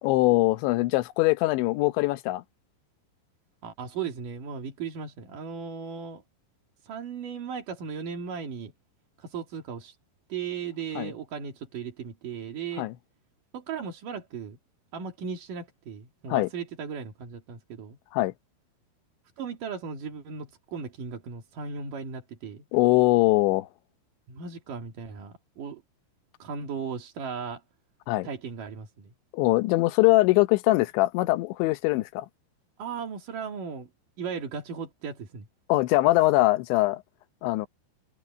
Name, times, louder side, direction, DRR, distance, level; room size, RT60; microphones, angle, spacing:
voice 1, 0.0-2.4 11.0-11.1 12.8-12.9 16.3-16.5 18.1-18.3 22.7-23.7 28.1-28.3 29.3-32.3 35.7-37.0 37.4-37.7, left 20 dB, 75° left, 3.0 m, -22 dB
voice 2, 3.6-6.2 6.8-8.7 9.2-10.0 10.3-12.9 13.5-14.6 14.9-18.0 19.4-22.6 24.3-25.8 26.4-27.6 28.2-29.1 32.8-33.9 34.2-35.5, right 6 dB, 50° right, 3.5 m, -36 dB
omnidirectional pair, 5.6 m